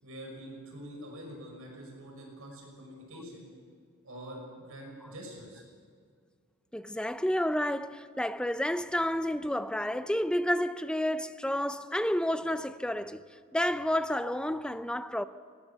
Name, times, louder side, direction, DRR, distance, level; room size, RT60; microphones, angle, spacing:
voice 1, 0.0-3.5 4.0-5.6, equal, 75° right, 6.0 m, -45 dB
voice 2, 6.7-13.2 13.5-15.2, left 1 dB, 5° left, 0.5 m, -30 dB
19.5 x 19.5 x 7.1 m
head